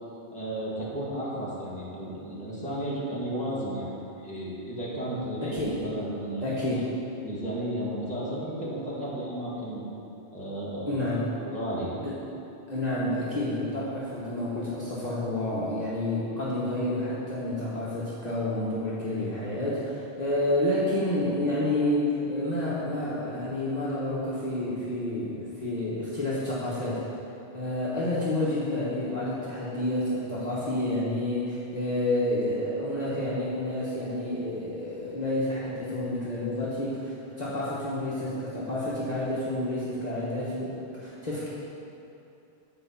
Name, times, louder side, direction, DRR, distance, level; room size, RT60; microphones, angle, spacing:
voice 1, 0.3-3.9 4.2-6.8 7.2-9.8 10.3-12.0, right 1 dB, 5° left, -8 dB, 1.8 m, -34 dB
voice 2, 5.4-5.7 6.4-6.9 10.9-11.3 12.0-12.2 12.7-27.0 27.5-41.5, left 1 dB, 40° left, -9 dB, 1.3 m, -29 dB
9.3 x 4.7 x 5.7 m, 2.8 s
omnidirectional pair, 1.1 m